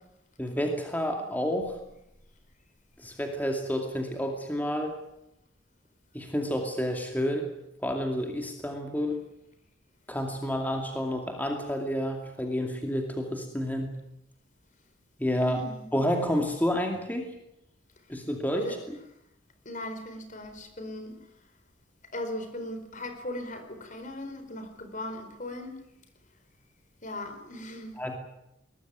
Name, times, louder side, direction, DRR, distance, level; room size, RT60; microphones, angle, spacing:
voice 1, 0.4-1.8 3.0-5.0 6.1-7.5 7.8-9.2 10.1-14.0 15.2-15.6 15.9-17.3 18.1-18.8 28.0-28.2, equal, 10° left, 3 dB, 2.4 m, -29 dB
voice 2, 15.4-15.9 18.6-18.8 19.6-21.2 22.1-25.7 27.0-27.9, left 1 dB, 40° left, 8 dB, 4.4 m, -38 dB
22.0 x 19.5 x 9.4 m, 0.83 s
head